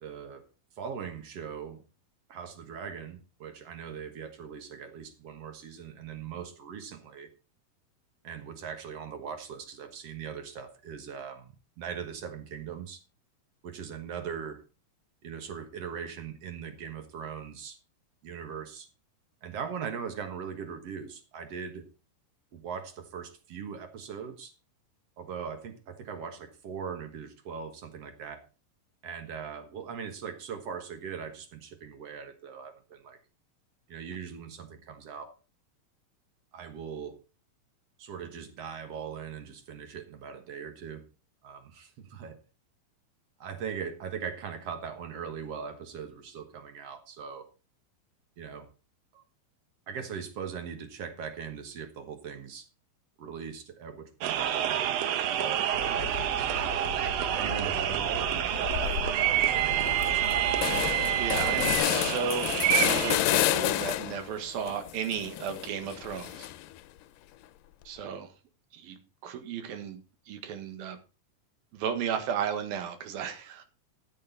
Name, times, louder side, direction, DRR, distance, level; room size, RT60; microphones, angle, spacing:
voice 1, 0.0-0.5 0.8-1.8 2.3-7.3 8.2-13.0 13.6-14.6 15.2-17.8 18.2-18.9 19.4-21.9 22.5-24.5 25.2-28.5 29.0-33.2 33.9-35.4 36.5-37.2 38.0-41.1 41.4-42.4 43.4-47.5 48.4-48.7 49.1-49.2 49.9-52.7 53.2-55.0 55.4-56.7 57.3-60.2, right 7 dB, 55° right, 2.0 m, -40 dB
sound 1, 54.2-63.2, right 11 dB, 75° right, 1.5 m, -28 dB
sound 2, 55.7-61.8, left 4 dB, 35° left, 2.7 m, -39 dB
sound 3, 58.7-59.1 59.5-59.6 59.9-64.3 64.7-66.8, left 14 dB, 80° left, 2.2 m, -30 dB
voice 2, 61.2-66.5 67.9-68.3 68.7-70.0 70.3-71.0 71.7-73.6, right 7 dB, 90° right, 3.3 m, -34 dB
14.0 x 8.6 x 4.0 m
omnidirectional pair, 4.1 m